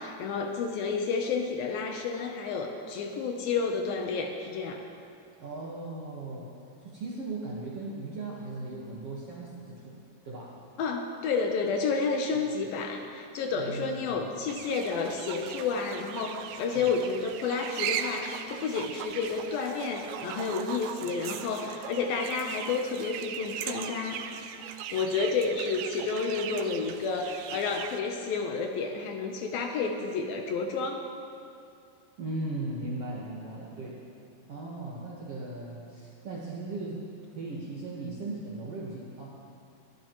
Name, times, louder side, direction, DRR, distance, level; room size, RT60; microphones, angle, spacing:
voice 1, 0.0-4.8 10.8-24.2 24.9-31.0, left 4 dB, 75° left, 3 dB, 2.4 m, -30 dB
voice 2, 5.4-6.5 6.8-10.0 10.2-10.6 13.5-14.4 16.7-16.9 32.2-34.0 34.5-37.0 37.3-39.3, right 2 dB, 60° right, -5 dB, 1.6 m, -38 dB
sound 1, 14.5-28.0, right 9 dB, 80° right, 2.2 m, -38 dB
22.0 x 14.0 x 3.1 m, 2.4 s
omnidirectional pair, 4.7 m